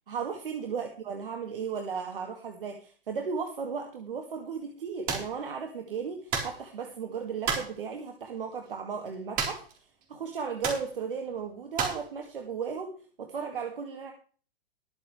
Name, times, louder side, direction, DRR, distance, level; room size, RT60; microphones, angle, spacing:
voice 1, 0.1-9.6 10.1-12.9 13.2-14.1, right 6 dB, 65° right, 3 dB, 2.3 m, -35 dB
sound 1, 5.1-5.3 6.3-6.6 7.4-7.7 9.4-9.8 10.0-10.1 10.6-10.9 11.8-12.1, right 5 dB, 30° right, 4.2 m, -31 dB
21.5 x 7.5 x 3.3 m, 0.40 s
figure-of-eight pair, 110°, 29 cm